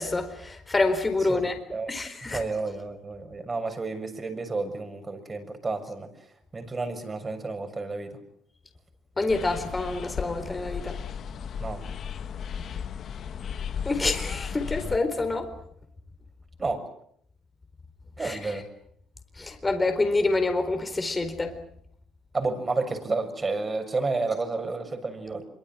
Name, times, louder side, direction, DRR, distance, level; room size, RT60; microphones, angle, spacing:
voice 1, 0.0-1.6 1.9-2.4 9.2-11.0 13.8-15.5 18.2-18.6 19.4-21.6, left 2 dB, 25° left, 4.2 m, -27 dB
voice 2, 2.3-6.1 6.5-8.2 11.6-11.8 16.6-16.8 18.2-18.6 22.3-25.4, right 3 dB, 30° right, 6.7 m, -31 dB
sound 1, 9.3-15.0, left 7 dB, 60° left, 1.7 m, -35 dB
26.0 x 24.0 x 7.6 m
supercardioid pair, 65°, 0 cm